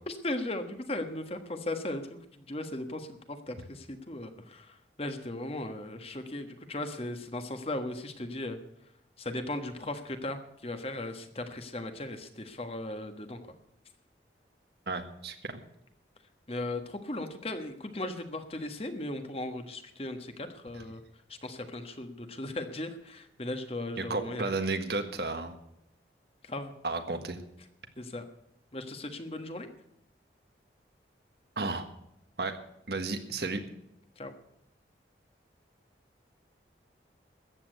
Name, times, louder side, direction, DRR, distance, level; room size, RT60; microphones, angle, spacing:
voice 1, 0.1-8.6 9.2-13.4 16.5-21.0 21.3-24.5 26.4-26.7 28.0-28.2 28.7-29.7 34.2-34.3, left 1 dB, 35° left, 8 dB, 1.4 m, -37 dB
voice 2, 14.9-15.6 24.0-25.5 26.8-27.4 31.6-31.8 32.4-32.6 32.9-33.6, right 3 dB, 65° right, 7 dB, 1.6 m, -33 dB
14.0 x 8.7 x 8.1 m, 0.78 s
head